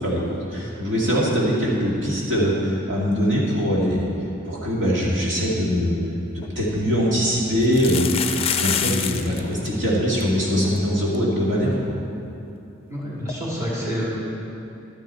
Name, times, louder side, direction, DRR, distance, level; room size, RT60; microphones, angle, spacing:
voice 1, 0.0-4.1 4.4-6.0 6.3-8.1 8.6-11.9, equal, 65° right, -5 dB, 2.4 m, -22 dB
sound 1, 6.0-6.1 6.4-6.5 7.6-9.4 9.7-9.8 9.9-10.2 10.8-10.9 11.1-11.2 13.3-13.4, left 8 dB, 30° left, 0.5 m, -26 dB
voice 2, 12.9-14.2, equal, 15° right, -7 dB, 2.3 m, -28 dB
12.0 x 10.5 x 4.4 m, 2.7 s
head